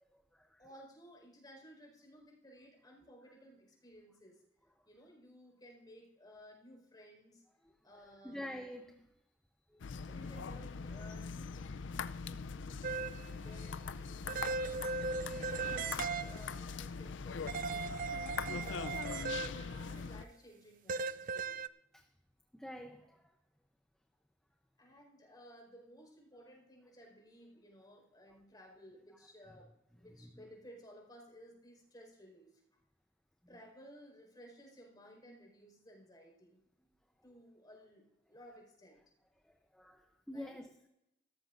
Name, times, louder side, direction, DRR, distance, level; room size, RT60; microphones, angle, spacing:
voice 1, 0.6-4.4 4.8-7.4 7.8-8.4 10.0-12.8 13.4-14.6 15.2-18.1 18.4-19.1 19.7-21.6 24.8-32.5 33.5-36.6 37.2-39.0 40.3-40.6, equal, 20° left, 4.8 m, -57 dB
voice 2, 8.2-8.9 21.9-22.0 22.5-23.2 39.7-40.9, left 1 dB, 5° left, 0.7 m, -46 dB
sound 1, 9.8-20.3, left 5 dB, 70° left, 0.5 m, -42 dB
sound 2, 12.8-13.3 14.3-16.6 17.5-19.9 20.9-21.7, right 4 dB, 45° right, 0.4 m, -38 dB
17.0 x 14.0 x 2.6 m
head